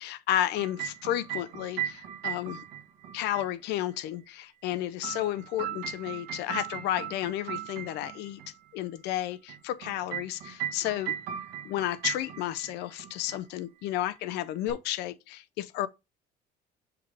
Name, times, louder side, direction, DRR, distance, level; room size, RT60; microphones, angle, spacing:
voice 1, 0.0-2.6 3.1-8.4 8.7-11.2 11.6-15.9, left 13 dB, 85° left, 0.5 m, -32 dB
sound 1, 0.5-3.5 4.7-8.5 9.5-12.7 13.0-13.4 14.7-14.8, right 11 dB, 90° right, 1.3 m, -37 dB
5.8 x 3.3 x 4.8 m
cardioid pair, 110°, 17 cm